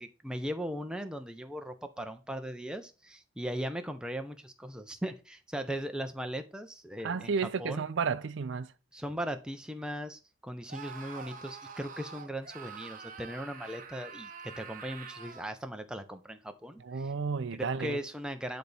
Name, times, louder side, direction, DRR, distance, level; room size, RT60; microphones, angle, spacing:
voice 1, 0.0-7.8 8.9-17.1 17.6-18.6, equal, 5° right, 0.6 m, -38 dB
voice 2, 7.0-8.7 16.8-18.0, right 5 dB, 60° right, 0.4 m, -32 dB
Screaming, 10.7-15.5, right 5 dB, 40° right, 0.8 m, -46 dB
10.0 x 4.0 x 3.4 m
head